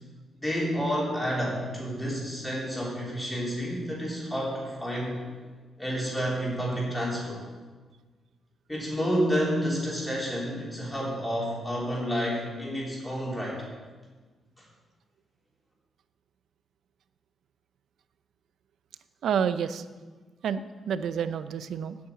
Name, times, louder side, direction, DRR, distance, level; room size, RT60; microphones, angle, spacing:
voice 1, 0.4-5.3 5.8-7.4 8.7-13.6, equal, 5° left, -4 dB, 3.5 m, -30 dB
voice 2, 19.2-19.8 20.4-22.0, right 7 dB, 70° right, 12 dB, 0.6 m, -29 dB
9.6 x 8.7 x 8.6 m, 1.4 s
wide cardioid pair, 160°, 0 cm